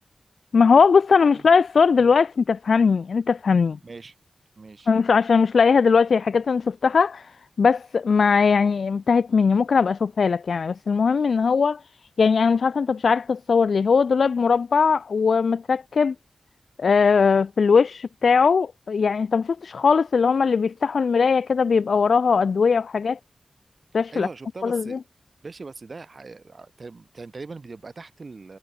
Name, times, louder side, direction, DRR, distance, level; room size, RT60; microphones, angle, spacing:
voice 1, 0.5-3.8 4.9-7.3 7.6-11.8 12.2-16.1 16.8-23.2 23.9-24.3 24.6-25.0, left 5 dB, 90° left, 0.4 m, -20 dB
voice 2, 3.8-4.2 4.6-4.9 23.9-25.0 25.4-28.6, right 3 dB, 55° right, 2.0 m, -40 dB
wide cardioid pair, 80°, 0 cm